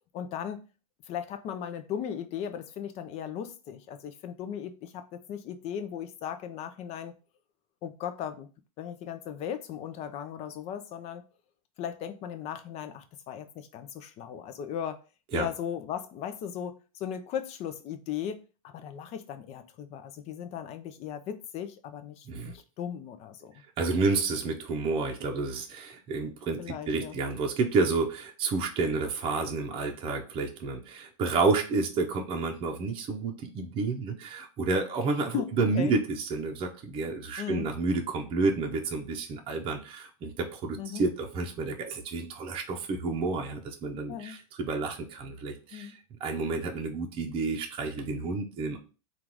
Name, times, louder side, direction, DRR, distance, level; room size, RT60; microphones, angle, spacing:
voice 1, 0.1-0.6 1.1-7.2 7.8-8.5 8.8-11.2 11.8-15.0 15.3-23.5 26.6-27.2 35.3-36.0 37.4-37.7 40.8-41.0 44.1-44.4 45.7-46.0, left 9 dB, 35° left, 0.6 m, -37 dB
voice 2, 23.8-48.8, right 3 dB, 30° right, 0.7 m, -30 dB
3.7 x 2.4 x 4.6 m
supercardioid pair, 135°, 19 cm